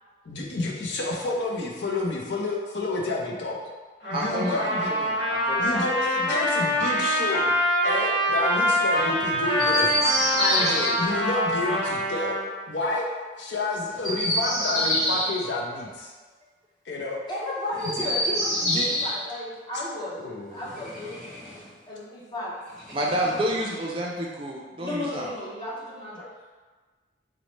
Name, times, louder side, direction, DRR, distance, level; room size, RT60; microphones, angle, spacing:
voice 1, 0.2-3.6 4.1-4.9 5.6-7.5 7.8-9.9 10.3-12.4 12.7-13.1 13.4-16.1 16.9-17.2 18.6-18.9 20.2-20.7, left 2 dB, 75° left, -1 dB, 0.5 m, -29 dB
Trumpet, 4.0-12.4, equal, 60° left, 1.5 m, -25 dB
voice 2, 4.1-4.6 4.9-5.7 10.6-11.1 22.9-25.3, right 1 dB, 30° right, -2 dB, 0.4 m, -30 dB
Chirp tweet, 9.5-10.9 13.9-15.3 17.7-19.2 20.6-21.7 22.8-23.7, equal, ahead, 1.4 m, -27 dB
voice 3, 17.2-21.2 21.9-22.5 23.0-23.6 24.8-26.3, left 1 dB, 25° left, -7 dB, 0.7 m, -34 dB
3.9 x 2.1 x 3.1 m, 1.4 s
head